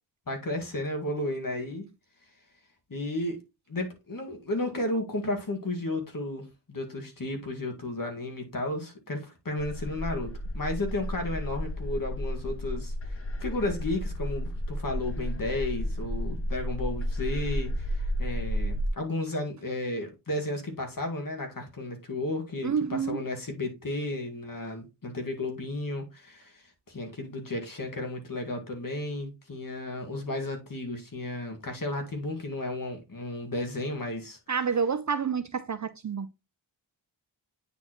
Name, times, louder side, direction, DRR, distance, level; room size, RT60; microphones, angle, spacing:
voice 1, 0.3-1.8 2.9-3.4 3.7-34.4, left 2 dB, 45° left, 1.9 m, -33 dB
sound 1, 9.6-18.9, equal, 30° left, 0.8 m, -32 dB
voice 2, 22.6-23.2 34.5-36.3, right 6 dB, 40° right, 0.4 m, -28 dB
8.9 x 4.2 x 3.0 m
wide cardioid pair, 85°, 46 cm